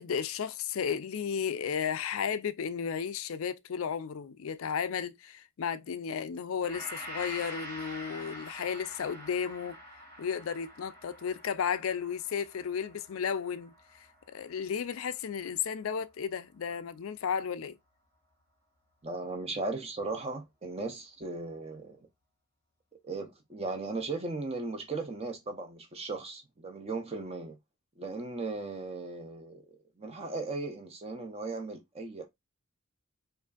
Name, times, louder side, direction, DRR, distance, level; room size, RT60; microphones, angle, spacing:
voice 1, 0.0-9.8 10.2-13.7 14.3-17.8, left 7 dB, 70° left, 0.4 m, -33 dB
Gong, 6.6-15.1 15.4-15.6, equal, 45° right, 2.3 m, -46 dB
voice 2, 19.0-22.1 23.0-27.6 28.0-29.6 30.0-32.3, right 3 dB, 30° right, 0.6 m, -37 dB
5.0 x 2.5 x 2.3 m
head